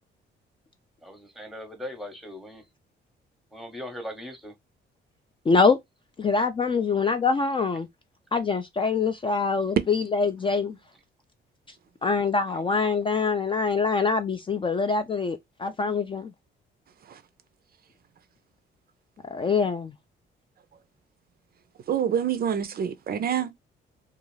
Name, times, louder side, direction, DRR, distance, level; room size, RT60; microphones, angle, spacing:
voice 1, 1.0-2.6 3.5-4.5, left 1 dB, ahead, 0.8 m, -39 dB
voice 2, 5.5-5.8 6.2-7.9 8.3-10.8 12.0-16.3 19.3-19.9, left 4 dB, 25° left, 0.3 m, -24 dB
voice 3, 21.9-23.5, right 8 dB, 50° right, 0.4 m, -27 dB
2.4 x 2.3 x 3.0 m
cardioid pair, 90°, 20 cm